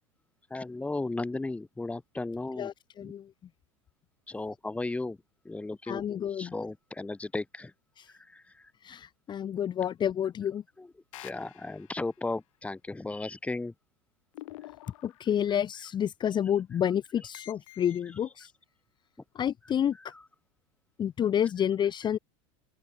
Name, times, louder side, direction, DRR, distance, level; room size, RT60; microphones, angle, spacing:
voice 1, 0.5-2.7 3.0-3.1 4.3-5.2 5.5-6.0 6.3-7.7 8.3-8.7 10.8-10.9 11.2-13.7 20.1-20.2, left 2 dB, 10° left, 2.1 m, -35 dB
voice 2, 2.6-3.3 5.9-6.5 8.0-8.1 8.8-10.6 15.0-18.5 19.3-20.1 21.0-22.2, left 9 dB, 25° left, 1.3 m, -29 dB
sound 1, 11.1-12.2 14.3-15.5 17.3-18.1, left 17 dB, 75° left, 6.2 m, -48 dB
open air
supercardioid pair, 125°, 17 cm